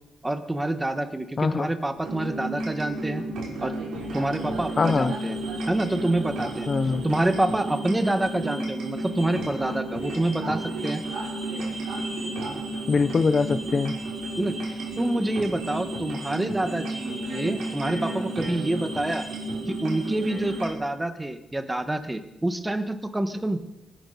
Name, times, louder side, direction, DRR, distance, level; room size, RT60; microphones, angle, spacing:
voice 1, 0.2-3.2 3.6-3.7 4.1-5.4 5.7-6.7 7.0-11.0 14.4-19.2 19.7-23.6, right 1 dB, 10° right, 9 dB, 1.2 m, -27 dB
voice 2, 1.4-1.7 4.8-5.1 6.7-7.0 12.9-14.0, left 4 dB, 35° left, 13 dB, 0.4 m, -23 dB
sound 1, 2.0-20.7, right 2 dB, 85° right, 5.8 m, -32 dB
24.0 x 9.9 x 5.4 m, 0.91 s
cardioid pair, 140°, 0 cm